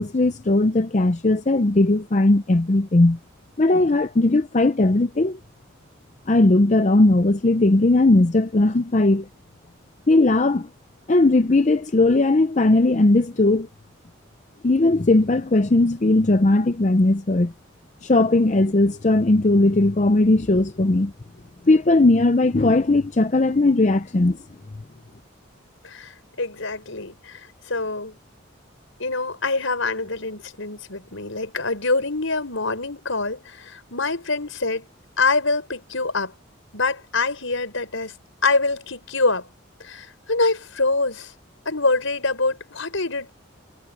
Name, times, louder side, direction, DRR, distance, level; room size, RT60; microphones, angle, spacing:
voice 1, 0.0-3.2 3.6-5.4 6.3-9.3 10.1-10.7 11.1-13.7 14.6-17.5 18.0-21.1 21.7-24.4, left 2 dB, 35° left, 0.5 m, -18 dB
voice 2, 25.8-28.2 29.0-34.9 35.2-36.3 36.7-38.1 38.4-39.5 39.8-41.3 41.7-43.3, left 3 dB, 75° left, 5.4 m, -25 dB
head